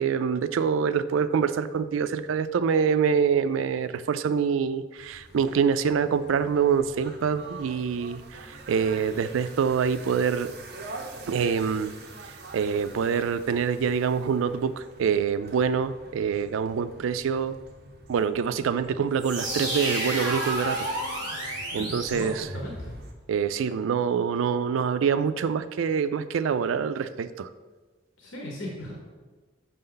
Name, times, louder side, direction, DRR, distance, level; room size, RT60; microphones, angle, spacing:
voice 1, 0.0-10.5 11.3-11.9 12.5-17.6 18.1-20.9 21.7-22.5 23.3-27.5, right 6 dB, 85° right, 13 dB, 0.3 m, -25 dB
sound 1, 4.9-23.1, right 3 dB, 55° right, 0.8 m, -46 dB
sound 2, 19.2-23.0, right 1 dB, 20° right, 1.5 m, -31 dB
voice 2, 21.7-23.0 28.2-29.0, left 1 dB, 85° left, -2 dB, 1.0 m, -37 dB
6.2 x 5.4 x 3.8 m, 1.3 s
head